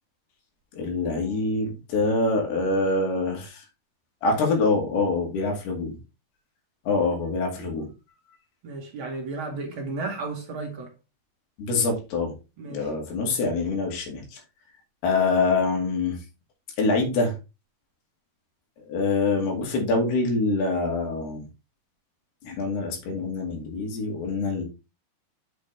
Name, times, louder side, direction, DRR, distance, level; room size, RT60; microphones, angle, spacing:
voice 1, 0.7-3.6 4.2-6.0 6.9-7.9 11.6-12.3 12.7-14.4 15.0-16.2 16.8-17.3 18.9-21.4 22.4-24.6, left 3 dB, 80° left, 4.2 m, -25 dB
voice 2, 8.6-10.9 12.6-12.9, right 3 dB, 40° right, 2.2 m, -33 dB
8.5 x 5.9 x 3.3 m
omnidirectional pair, 4.6 m